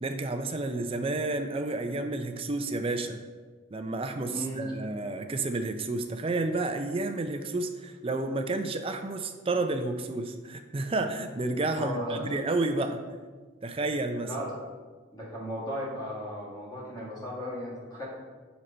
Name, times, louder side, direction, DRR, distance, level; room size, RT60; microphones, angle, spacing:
voice 1, 0.0-3.2 3.7-13.0 13.6-14.3, right 2 dB, 30° right, 7 dB, 0.4 m, -30 dB
voice 2, 4.3-4.6 11.8-12.3 14.2-14.6 15.1-18.1, equal, 20° left, -6 dB, 1.9 m, -35 dB
6.5 x 4.0 x 4.3 m, 1.4 s
head